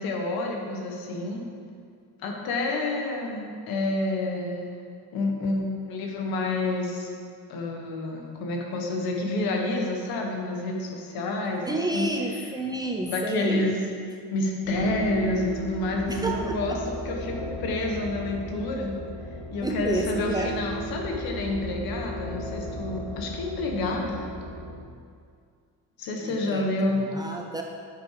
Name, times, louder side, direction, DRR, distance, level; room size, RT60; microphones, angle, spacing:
voice 1, 0.0-1.4 2.2-4.7 5.1-7.1 7.5-12.1 13.1-13.8 14.3-19.0 19.5-24.3 26.0-27.1, left 2 dB, 75° left, 1 dB, 1.6 m, -29 dB
voice 2, 11.7-13.8 16.1-16.8 19.6-20.5 26.2-26.7 26.9-27.6, right 2 dB, 10° right, 1 dB, 0.4 m, -30 dB
sound 1, 14.6-24.7, equal, 45° left, 2.5 m, -35 dB
9.9 x 6.1 x 4.9 m, 2.2 s
cardioid pair, 160°, 37 cm